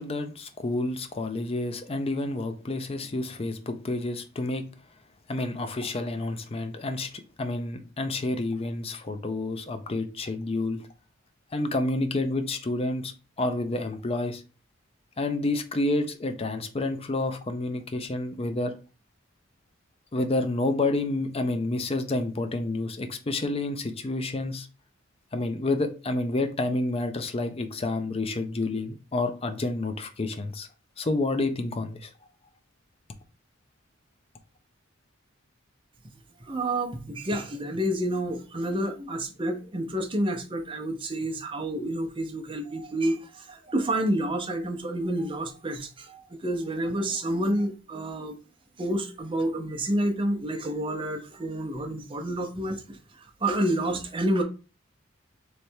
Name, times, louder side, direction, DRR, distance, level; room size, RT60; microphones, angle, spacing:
voice 1, 0.0-4.6 5.3-7.1 7.4-10.8 11.5-13.1 13.4-14.4 15.2-18.7 20.1-24.7 25.3-30.7 31.0-32.1, left 2 dB, 30° left, 0.5 m, -29 dB
voice 2, 36.4-48.4 48.8-54.4, right 1 dB, 25° right, 0.7 m, -29 dB
3.3 x 3.2 x 4.4 m
head